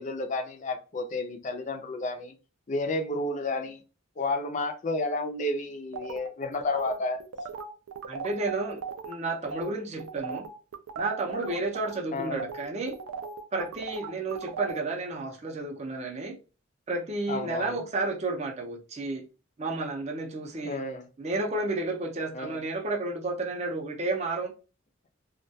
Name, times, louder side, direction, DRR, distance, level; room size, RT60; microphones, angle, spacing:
voice 1, 0.0-2.3 2.7-3.8 4.2-7.2 12.1-12.5 17.3-17.8 20.6-21.1 22.3-22.6, left 2 dB, 35° left, 0.4 m, -31 dB
sound 1, 5.9-9.1 9.5-9.7 10.0-14.8, right 5 dB, 90° right, 0.4 m, -38 dB
voice 2, 8.1-8.8 9.1-10.5 11.0-12.9 13.5-16.3 16.9-19.2 19.6-20.8 21.2-24.5, right 2 dB, 30° right, 0.5 m, -31 dB
2.2 x 2.2 x 2.6 m
head